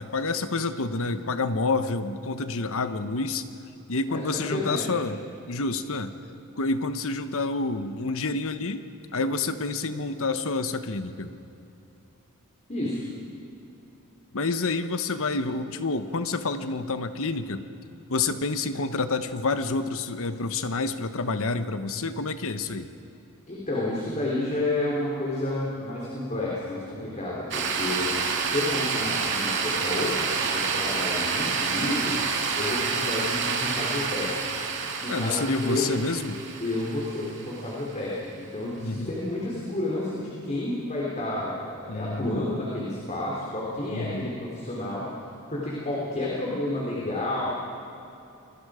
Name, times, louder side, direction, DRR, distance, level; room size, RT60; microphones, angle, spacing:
voice 1, 0.0-3.5 3.9-5.2 5.5-6.1 6.6-8.8 9.1-11.3 14.3-17.6 18.1-22.9 35.1-36.4 38.8-39.1 41.9-42.5 43.9-44.3, left 3 dB, 65° left, 10 dB, 1.1 m, -28 dB
voice 2, 4.1-5.0 12.7-13.0 23.5-32.1 32.6-34.5 35.0-35.9 36.6-47.4, left 1 dB, 30° left, -5 dB, 3.6 m, -30 dB
sound 1, 27.5-37.8, right 5 dB, 55° right, 2.4 m, -28 dB
27.5 x 21.0 x 5.0 m, 2.8 s
head